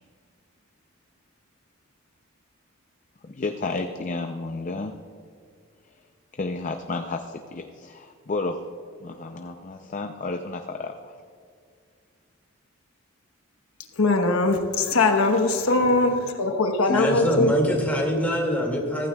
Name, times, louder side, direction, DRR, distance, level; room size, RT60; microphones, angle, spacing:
voice 1, 3.2-4.9 5.8-6.0 6.3-8.6 9.0-11.1, left 3 dB, 35° left, 6 dB, 0.5 m, -32 dB
voice 2, 14.0-17.5, left 2 dB, 90° left, 5 dB, 1.1 m, -21 dB
voice 3, 16.9-19.1, equal, 10° left, -1 dB, 2.1 m, -24 dB
15.0 x 15.0 x 2.3 m, 2.2 s
head